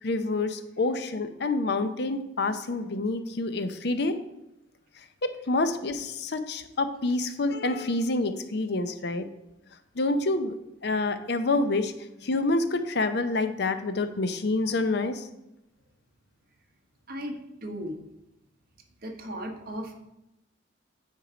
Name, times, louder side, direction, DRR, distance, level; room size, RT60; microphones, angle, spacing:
voice 1, 0.0-4.2 5.2-9.3 10.0-10.5 10.8-11.9 12.2-15.3, left 2 dB, 60° left, 10 dB, 0.6 m, -27 dB
voice 2, 17.6-17.9 19.0-20.0, equal, 50° right, 3 dB, 1.2 m, -36 dB
9.3 x 4.6 x 5.0 m, 0.89 s
head